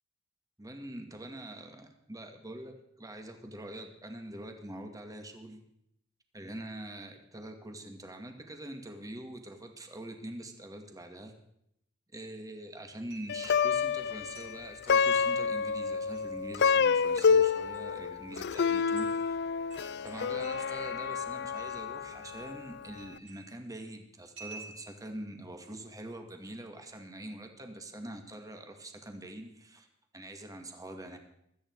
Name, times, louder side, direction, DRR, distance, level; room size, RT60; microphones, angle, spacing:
voice 1, 0.6-5.6 6.3-11.3 12.1-19.4 20.0-29.9 30.1-31.2, right 1 dB, 20° right, 5 dB, 2.0 m, -44 dB
sound 1, 13.1-13.6 14.3-14.6 15.9-16.3 17.6-17.8 18.5-18.6 19.0-19.3 19.7-21.2 21.5-21.9 22.2-22.7 23.0-23.6 24.4-25.1, right 4 dB, 65° right, 7.6 m, -51 dB
Plucked string instrument, 13.3-22.7, left 6 dB, 55° left, 0.5 m, -28 dB
17.0 x 14.0 x 4.7 m, 0.75 s
head